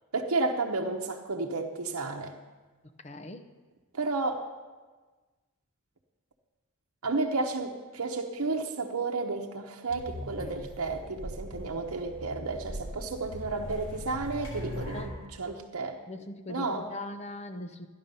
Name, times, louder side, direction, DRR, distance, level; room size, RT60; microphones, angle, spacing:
voice 1, 0.1-2.4 3.9-4.5 7.0-16.0 16.5-16.9, right 3 dB, 80° right, 1 dB, 0.9 m, -32 dB
voice 2, 3.0-3.5 10.4-10.7 14.9-15.1 16.1-17.9, left 2 dB, 30° left, 8 dB, 0.7 m, -41 dB
sound 1, 9.9-15.0, equal, 75° left, 5.0 m, -40 dB
13.5 x 10.5 x 5.4 m, 1.3 s
head